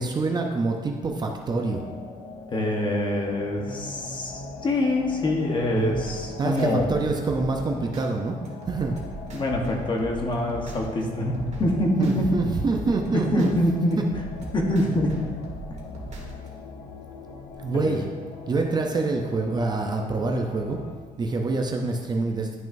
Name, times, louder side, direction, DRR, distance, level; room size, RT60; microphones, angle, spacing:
voice 1, 0.0-1.8 3.5-4.6 5.7-6.0 6.4-8.4 8.7-9.0 12.0-13.5 17.6-18.0 18.5-20.8 21.2-22.6, right 3 dB, 30° right, 2 dB, 0.6 m, -26 dB
sound 1, 1.6-20.9, left 5 dB, 90° left, 0.9 m, -41 dB
voice 2, 2.5-6.9 9.3-12.4 13.1-14.0 14.5-15.2 15.7-15.8 17.7-18.0, left 1 dB, 30° left, 0 dB, 1.1 m, -25 dB
sound 2, 5.9-8.1 8.5-11.0 11.3-13.5 13.9-16.5, right 3 dB, 50° right, 1.6 m, -40 dB
11.0 x 6.1 x 2.6 m, 1.5 s
cardioid pair, 160°, 15 cm